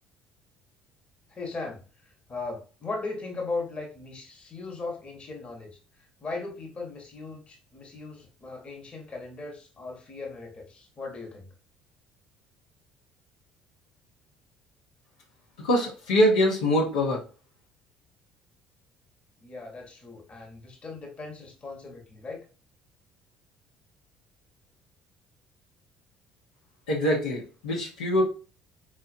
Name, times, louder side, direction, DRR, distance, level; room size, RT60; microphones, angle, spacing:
voice 1, 1.3-11.5 19.4-22.4, left 3 dB, 30° left, 1 dB, 1.3 m, -38 dB
voice 2, 15.6-17.2 26.9-28.2, equal, 70° left, -4 dB, 1.0 m, -23 dB
4.4 x 2.4 x 2.6 m, 0.35 s
figure-of-eight pair, 55°, 4 cm